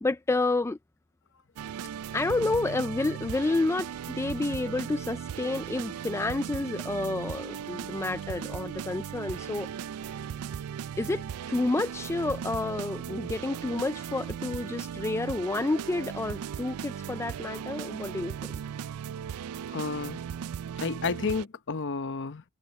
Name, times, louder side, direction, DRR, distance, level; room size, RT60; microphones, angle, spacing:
voice 1, 0.0-0.8 2.1-3.9 4.2-9.7 11.0-18.5, left 2 dB, 10° left, 0.3 m, -30 dB
sound 1, 1.6-21.4, right 8 dB, 75° right, 0.4 m, -37 dB
voice 2, 19.7-20.2 20.8-22.4, left 4 dB, 55° left, 0.8 m, -31 dB
head